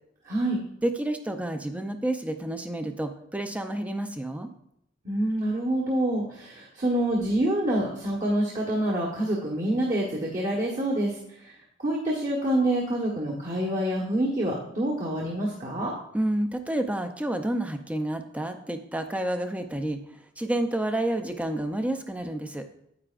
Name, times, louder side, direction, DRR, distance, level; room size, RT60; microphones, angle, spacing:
voice 1, 0.3-0.6 5.0-11.5 11.8-15.9, right 1 dB, 40° right, -4 dB, 1.3 m, -27 dB
voice 2, 0.8-4.5 16.1-20.0 20.4-22.6, right 1 dB, 5° right, 7 dB, 0.6 m, -29 dB
9.6 x 8.7 x 2.5 m, 0.75 s
head